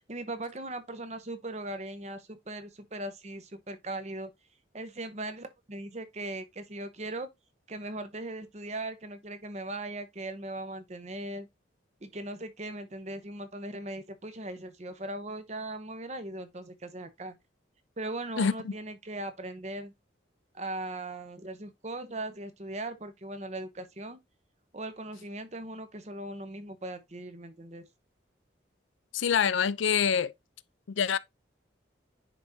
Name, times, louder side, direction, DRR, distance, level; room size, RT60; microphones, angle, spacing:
voice 1, 0.0-4.3 4.7-7.3 7.7-11.5 12.0-17.4 18.0-19.9 20.5-24.2 24.7-27.9, right 2 dB, 35° right, 0.8 m, -39 dB
voice 2, 18.4-18.7 29.1-30.3 31.0-31.2, left 7 dB, 90° left, 0.4 m, -26 dB
10.0 x 3.5 x 2.7 m
head